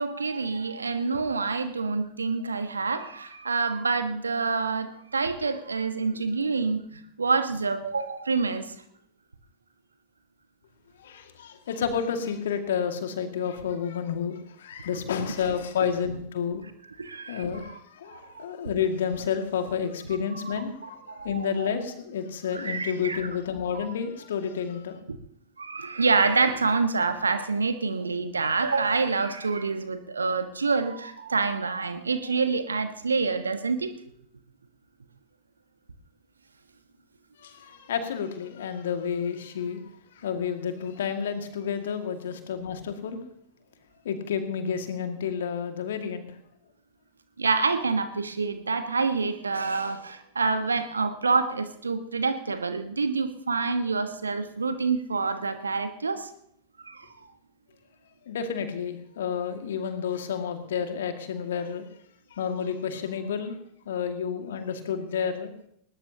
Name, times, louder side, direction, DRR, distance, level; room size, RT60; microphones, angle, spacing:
voice 1, 0.0-6.8 7.2-8.7 17.0-17.6 18.1-18.4 20.3-20.4 21.1-21.7 22.5-23.3 23.7-23.9 25.1-25.2 25.6-33.9 47.4-56.3 56.9-57.0, right 4 dB, 75° right, 10 dB, 1.3 m, -27 dB
voice 2, 11.0-16.6 17.3-25.0 37.4-39.8 40.2-43.2 44.1-46.3 58.3-61.9 62.3-63.5 63.9-65.5, left 7 dB, 60° left, 6 dB, 2.0 m, -30 dB
20.0 x 19.5 x 2.9 m, 0.69 s
figure-of-eight pair, 90°, 0 cm